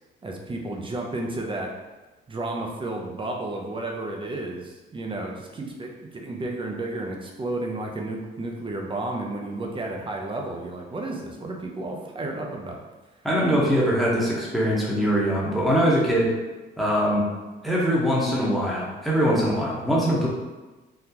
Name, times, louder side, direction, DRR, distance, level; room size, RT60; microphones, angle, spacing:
voice 1, 0.2-1.7 2.3-12.8, right 2 dB, 25° right, 1 dB, 0.6 m, -32 dB
voice 2, 13.2-16.3 16.8-17.3 17.6-20.3, equal, ahead, -6 dB, 1.1 m, -22 dB
3.8 x 2.3 x 2.9 m, 1.2 s
cardioid pair, 90°, 20 cm